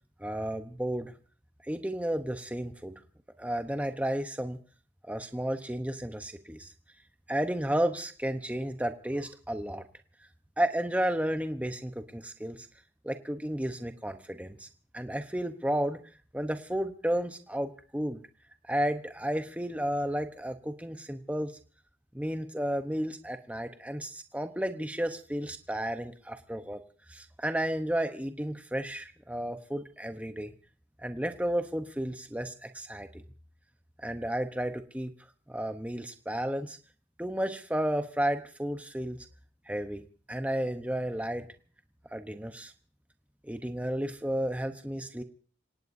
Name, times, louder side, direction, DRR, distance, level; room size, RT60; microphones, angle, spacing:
voice 1, 0.2-1.1 1.6-3.0 3.4-4.6 5.1-6.7 7.3-9.8 10.6-12.7 13.0-14.7 14.9-16.0 16.3-18.2 18.7-21.6 22.1-26.8 27.1-30.5 31.0-33.2 34.0-35.1 35.5-36.8 37.2-39.2 39.7-41.5 42.1-42.7 43.4-45.2, right 1 dB, 10° right, 7 dB, 0.9 m, -32 dB
28.0 x 18.0 x 2.7 m, 0.41 s
head